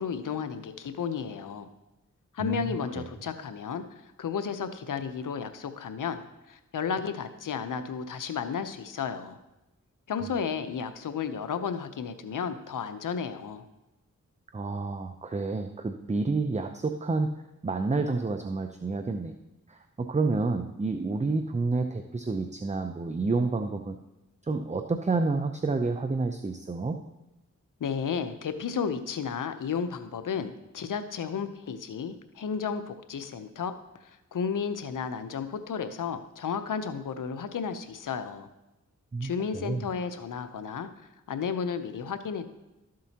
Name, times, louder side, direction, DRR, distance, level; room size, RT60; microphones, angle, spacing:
voice 1, 0.0-1.7 2.3-6.2 6.5-9.4 10.1-13.6 27.8-33.7 34.0-38.5 39.2-42.5, left 6 dB, 80° left, 10 dB, 0.8 m, -33 dB
voice 2, 14.5-17.3 17.6-19.3 19.7-24.0 24.5-27.0 39.1-39.8, right 3 dB, 20° right, 6 dB, 0.6 m, -29 dB
12.5 x 7.5 x 2.9 m, 0.98 s
cardioid pair, 45°, 32 cm